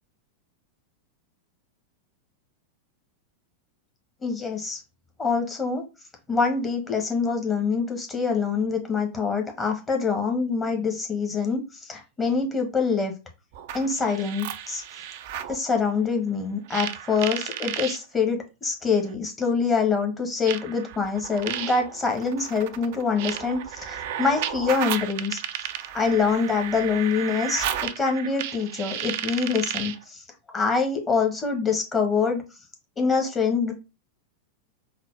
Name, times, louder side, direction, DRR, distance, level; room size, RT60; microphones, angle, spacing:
voice 1, 4.2-4.8 5.2-5.8 6.3-13.1 13.7-14.8 15.5-25.4 25.9-30.2 30.5-32.4 33.0-33.7, left 5 dB, 20° left, 1.2 m, -25 dB
sound 1, 13.5-15.6 16.7-18.0 19.1-19.2 20.5-30.0, right 10 dB, 50° right, 0.4 m, -33 dB
4.0 x 2.2 x 4.4 m
figure-of-eight pair, 90°, 0 cm